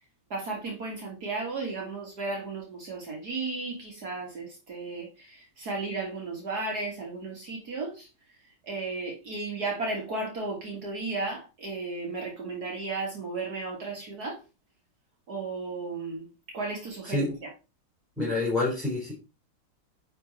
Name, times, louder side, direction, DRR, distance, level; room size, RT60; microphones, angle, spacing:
voice 1, 0.3-8.1 8.6-14.4 15.3-17.5, right 3 dB, 60° right, 0 dB, 2.5 m, -34 dB
voice 2, 18.2-19.2, left 2 dB, ahead, -7 dB, 4.1 m, -27 dB
10.0 x 4.6 x 4.3 m, 0.30 s
omnidirectional pair, 1.9 m